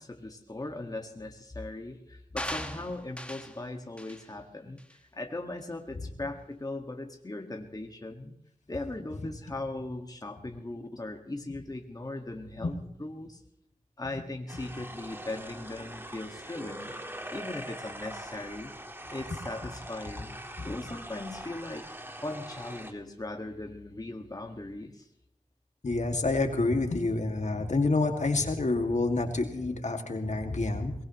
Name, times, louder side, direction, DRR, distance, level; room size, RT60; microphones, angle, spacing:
voice 1, 0.0-8.3 8.7-13.4 14.0-16.9 17.3-18.7 19.1-20.3 20.6-21.9 22.2-25.1, left 2 dB, 30° left, 3 dB, 1.7 m, -39 dB
sound 1, 2.4-3.6 4.0-4.2 4.8-4.9, left 1 dB, 10° left, 1.6 m, -38 dB
sound 2, 14.5-22.9, right 1 dB, 15° right, 1.7 m, -43 dB
voice 2, 25.8-30.9, left 3 dB, 65° left, 4 dB, 2.1 m, -28 dB
23.0 x 19.0 x 3.1 m, 0.77 s
wide cardioid pair, 70°, 13 cm